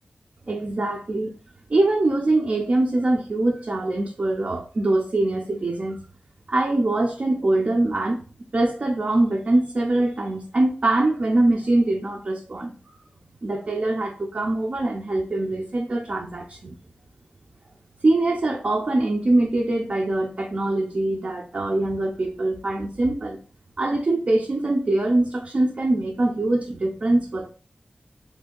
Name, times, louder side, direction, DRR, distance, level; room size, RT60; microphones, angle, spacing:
voice 1, 0.5-1.3 1.7-6.0 6.5-8.2 8.5-13.0 13.4-16.7 18.0-23.4 23.8-27.5, right 2 dB, 45° right, 1 dB, 0.4 m, -23 dB
3.1 x 2.5 x 3.6 m, 0.38 s
wide cardioid pair, 95°, 3 cm